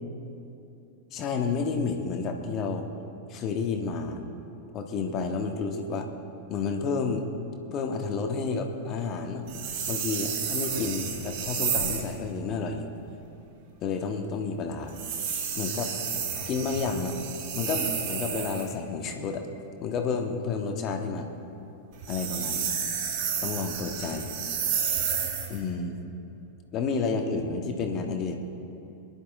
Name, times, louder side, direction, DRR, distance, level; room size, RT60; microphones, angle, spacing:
voice 1, 1.1-2.9 3.3-4.2 4.7-6.1 6.5-7.3 7.7-9.5 9.9-12.9 13.8-14.9 15.6-15.9 16.5-17.2 17.5-19.4 19.8-21.3 22.1-22.7 23.4-24.3 25.5-26.0 26.7-28.4, left 4 dB, 35° left, 4 dB, 1.5 m, -30 dB
sound 1, 9.5-12.1 14.9-18.7 21.9-25.6, right 7 dB, 45° right, 1.9 m, -31 dB
22.5 x 11.5 x 3.7 m, 2.8 s
figure-of-eight pair, 90°, 0 cm